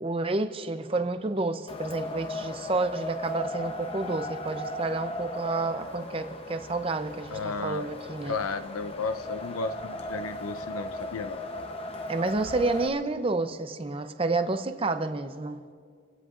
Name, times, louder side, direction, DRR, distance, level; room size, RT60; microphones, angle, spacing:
voice 1, 0.0-8.4 12.1-15.6, right 3 dB, 25° right, 9 dB, 0.6 m, -30 dB
Wind, 1.7-12.9, left 2 dB, 25° left, 0.8 m, -37 dB
voice 2, 7.3-7.9 8.3-11.4, left 4 dB, 90° left, 11 dB, 0.7 m, -33 dB
28.0 x 16.0 x 2.5 m, 2.2 s
head